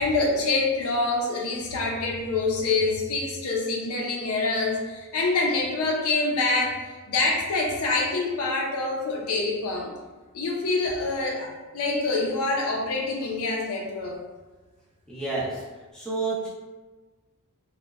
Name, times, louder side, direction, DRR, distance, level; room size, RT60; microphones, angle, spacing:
voice 1, 0.0-9.9 10.3-14.2, left 3 dB, 75° left, -1 dB, 0.5 m, -26 dB
voice 2, 15.1-15.6 15.9-16.5, right 3 dB, 5° left, -7 dB, 0.5 m, -29 dB
2.8 x 2.1 x 2.3 m, 1.3 s
head